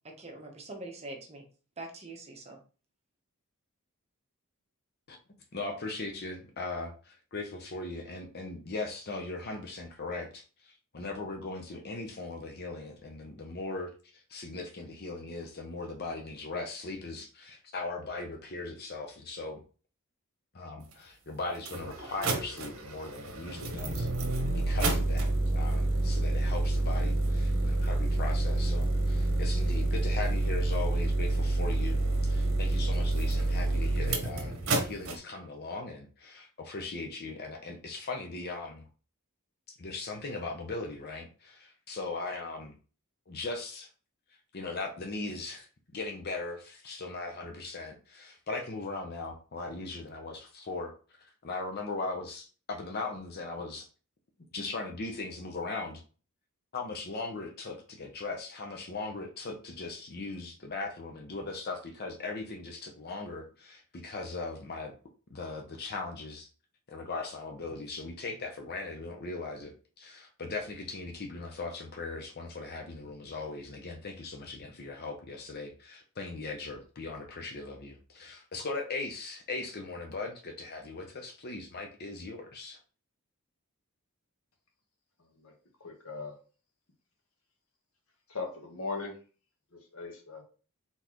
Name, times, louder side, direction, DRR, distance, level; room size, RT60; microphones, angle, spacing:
voice 1, 0.0-1.4 1.8-2.6, right 2 dB, 30° right, 1 dB, 1.0 m, -43 dB
voice 2, 5.5-13.9 14.3-19.6 20.5-38.8 39.7-42.7 43.3-43.9 44.5-45.7 45.9-50.9 51.4-53.9 54.5-56.0 56.7-64.9 65.3-66.5 66.9-82.8, left 3 dB, 45° left, 3 dB, 0.7 m, -39 dB
sound 1, 20.9-21.0 21.5-35.2, right 2 dB, 65° right, 1.0 m, -28 dB
voice 3, 85.2-85.5 85.8-86.4 88.3-89.2 89.7-90.4, left 3 dB, 70° left, 2 dB, 1.3 m, -39 dB
4.0 x 4.0 x 3.0 m, 0.37 s
head